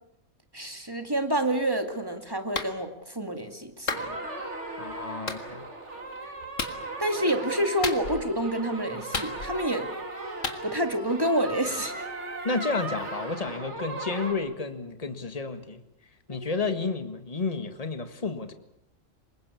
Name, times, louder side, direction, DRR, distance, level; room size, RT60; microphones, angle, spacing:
voice 1, 0.5-4.1 7.0-9.9 10.6-12.1 16.3-16.5, right 1 dB, 15° right, 7 dB, 2.3 m, -28 dB
Clapping, 2.5-2.7 3.9-4.1 5.3-5.4 6.6-6.8 7.8-8.3 9.1-9.7 10.4-10.6, left 4 dB, 80° left, 2.3 m, -32 dB
sound 1, 3.9-14.3, right 2 dB, 60° right, 3.2 m, -37 dB
voice 2, 4.8-5.6 12.4-15.8 16.3-18.5, left 4 dB, 30° left, 8 dB, 1.9 m, -31 dB
25.5 x 21.5 x 8.5 m, 0.80 s
omnidirectional pair, 1.3 m